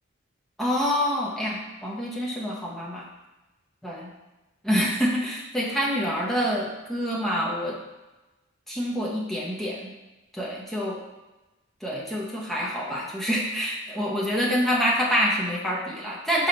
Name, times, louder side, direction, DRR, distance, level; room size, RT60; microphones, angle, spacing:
voice 1, 0.6-3.1 3.8-4.1 4.6-7.8 8.7-9.9 10.3-11.0 11.8-16.5, equal, ahead, -5 dB, 1.0 m, -26 dB
4.9 x 4.5 x 5.4 m, 1.1 s
head